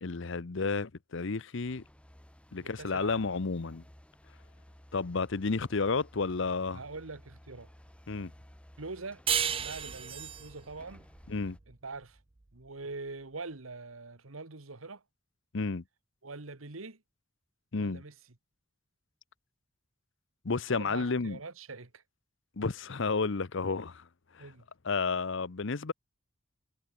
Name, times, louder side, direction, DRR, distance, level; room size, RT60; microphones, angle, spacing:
voice 1, 0.0-1.8 2.5-3.8 4.9-6.8 8.1-8.3 11.3-11.6 15.5-15.8 17.7-18.0 20.4-21.4 22.6-24.0 24.8-25.9, left 4 dB, 65° left, 0.8 m, -31 dB
sound 1, 1.6-11.6, equal, 5° left, 1.1 m, -56 dB
voice 2, 2.6-3.2 6.7-7.7 8.8-9.2 9.5-11.1 11.7-12.2 12.5-15.0 16.2-17.0 17.8-18.1 20.7-22.0 24.4-24.6, right 3 dB, 90° right, 1.7 m, -43 dB
sound 2, 9.3-12.4, right 8 dB, 25° right, 0.6 m, -34 dB
head